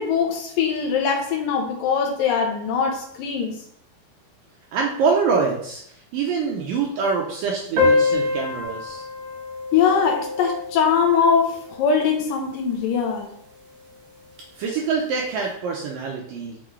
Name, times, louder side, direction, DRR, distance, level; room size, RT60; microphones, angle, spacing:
voice 1, 0.0-3.6 9.7-13.3, left 6 dB, 80° left, 2 dB, 2.0 m, -22 dB
voice 2, 4.7-9.0 14.5-16.6, right 5 dB, 80° right, -1 dB, 2.0 m, -25 dB
sound 1, 7.8-12.7, left 3 dB, 50° right, 1.6 m, -26 dB
6.4 x 6.0 x 3.2 m, 0.66 s
omnidirectional pair, 4.9 m